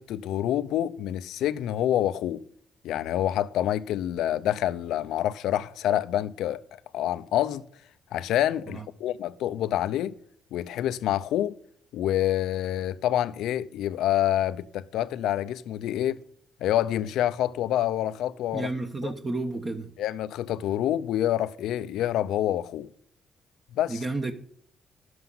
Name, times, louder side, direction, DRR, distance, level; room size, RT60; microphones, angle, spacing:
voice 1, 0.0-2.4 2.8-6.6 6.9-7.6 8.1-10.1 10.5-11.5 11.9-16.2 16.6-18.7 19.0-19.1 20.0-22.9 23.7-24.0, left 12 dB, 85° left, 0.6 m, -27 dB
voice 2, 18.5-19.9 23.9-24.3, right 2 dB, 30° right, 1.2 m, -31 dB
11.0 x 7.9 x 5.6 m
cardioid pair, 90°, 0 cm